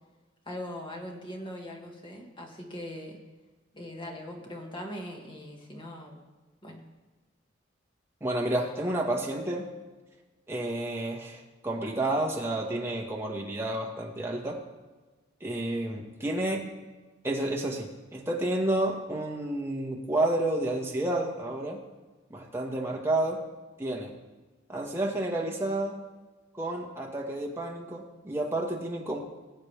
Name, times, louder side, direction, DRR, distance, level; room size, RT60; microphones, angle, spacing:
voice 1, 0.5-3.2 3.7-6.2 6.6-6.8, left 1 dB, 25° left, 1 dB, 1.7 m, -40 dB
voice 2, 8.2-9.7 10.5-14.6 15.4-16.7 17.2-21.8 22.3-23.4 23.8-24.1 24.7-26.0 26.5-29.2, right 1 dB, 15° right, -1 dB, 1.6 m, -30 dB
20.5 x 8.1 x 3.5 m, 1.2 s
head